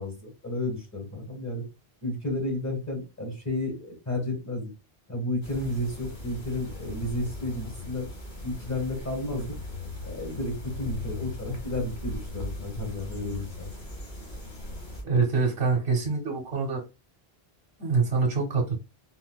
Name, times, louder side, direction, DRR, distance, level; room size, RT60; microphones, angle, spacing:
voice 1, 0.0-1.6 2.0-4.7 5.1-8.1 8.4-9.5 10.0-13.7, left 1 dB, 15° left, 1.3 m, -32 dB
sound 1, 5.4-15.0, left 2 dB, 50° left, 1.3 m, -38 dB
voice 2, 15.0-16.8 17.8-18.8, right 4 dB, 70° right, 1.0 m, -25 dB
3.9 x 2.5 x 2.2 m
omnidirectional pair, 1.0 m